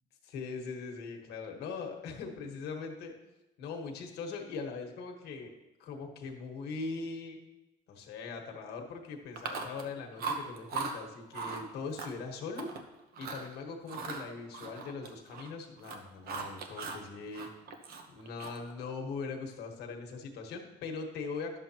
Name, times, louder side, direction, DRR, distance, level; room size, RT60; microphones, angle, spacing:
voice 1, 0.2-3.2 3.6-5.5 5.8-7.4 7.9-12.7 13.2-17.5 18.1-21.6, left 4 dB, 75° left, 2 dB, 1.4 m, -41 dB
Chewing mastication, 9.4-9.9 10.2-10.9 11.3-11.6 12.0-12.8 13.1-13.5 13.9-15.5 15.8-17.0 17.3-18.7, right 4 dB, 65° right, 1.0 m, -39 dB
11.0 x 7.1 x 2.9 m, 0.99 s
cardioid pair, 110°, 17 cm